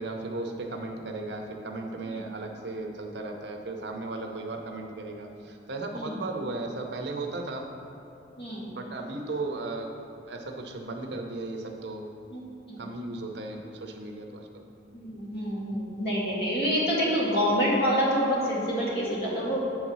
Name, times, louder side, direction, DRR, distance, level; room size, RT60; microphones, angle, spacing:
voice 1, 0.0-7.7 8.7-9.9 10.3-12.1 12.8-14.6, right 2 dB, 60° right, 3 dB, 0.7 m, -36 dB
voice 2, 8.4-8.7 12.3-12.9 14.9-19.6, equal, 55° left, -6 dB, 1.8 m, -27 dB
7.8 x 4.0 x 6.1 m, 2.9 s
head